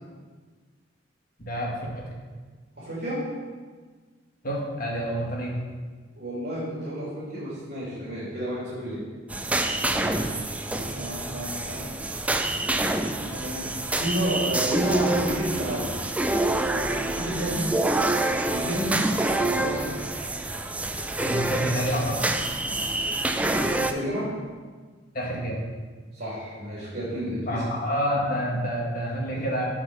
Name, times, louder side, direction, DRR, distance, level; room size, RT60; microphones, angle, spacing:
voice 1, 1.4-2.1 4.4-5.6 10.0-10.3 21.2-22.3 25.1-25.6 27.5-29.7, equal, 50° left, -1 dB, 1.8 m, -28 dB
voice 2, 2.8-3.2 6.2-9.0 10.7-11.9 13.2-15.9 16.6-17.7 18.5-19.0 19.3-19.9 23.4-24.3 26.1-27.6 29.3-29.4, right 1 dB, 55° right, -9 dB, 2.5 m, -31 dB
sound 1, 9.3-23.9, right 2 dB, 10° right, 0.4 m, -27 dB
8.3 x 4.8 x 6.1 m, 1.5 s
head